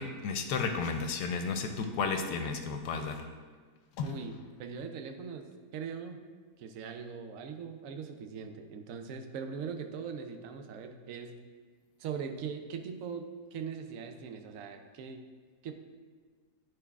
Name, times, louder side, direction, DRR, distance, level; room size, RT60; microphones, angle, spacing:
voice 1, 0.0-3.2 4.0-4.1, left 5 dB, 80° left, 5 dB, 1.1 m, -33 dB
voice 2, 4.0-5.5 5.7-6.2 6.6-11.3 12.0-15.3 15.6-15.7, right 6 dB, 65° right, 6 dB, 0.9 m, -41 dB
10.0 x 4.6 x 2.4 m, 1.5 s
omnidirectional pair, 1.8 m